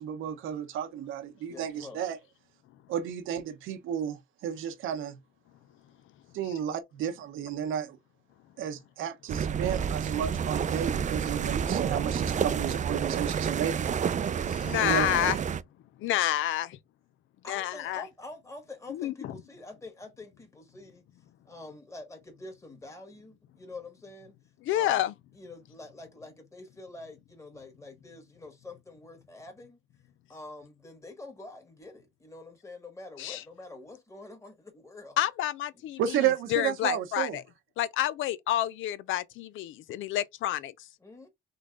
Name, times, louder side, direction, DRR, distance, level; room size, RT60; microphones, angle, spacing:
voice 1, 0.0-2.2 2.9-4.2 4.4-5.2 6.3-8.0 8.6-13.9 14.8-15.1 36.0-37.3, right 9 dB, 85° right, 0.9 m, -32 dB
voice 2, 1.5-2.0 17.4-21.1 21.5-24.4 24.7-25.0 25.4-29.8 30.3-35.2 41.0-41.3, left 2 dB, 15° left, 1.7 m, -46 dB
sound 1, 9.3-15.6, right 7 dB, 40° right, 0.5 m, -29 dB
voice 3, 14.4-15.4 16.0-16.8 17.5-18.0 18.9-19.4 24.6-25.1 33.2-33.4 35.2-37.4 37.8-40.9, left 13 dB, 85° left, 0.6 m, -29 dB
3.8 x 3.3 x 3.6 m
cardioid pair, 90°, 20 cm